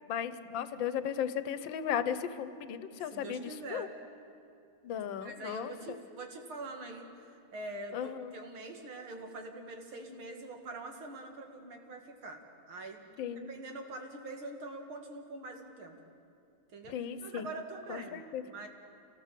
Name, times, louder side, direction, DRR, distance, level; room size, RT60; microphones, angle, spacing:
voice 1, 0.1-3.9 4.8-5.7 7.9-8.3 13.2-13.5 16.9-17.4 17.9-18.4, left 8 dB, 70° left, 12 dB, 1.6 m, -36 dB
voice 2, 3.0-3.9 5.2-7.1 7.5-12.4 12.7-13.1 13.5-16.0 16.7-17.0 17.2-18.7, right 2 dB, 85° right, 3 dB, 3.0 m, -44 dB
27.0 x 18.0 x 7.6 m, 2.6 s
omnidirectional pair, 2.2 m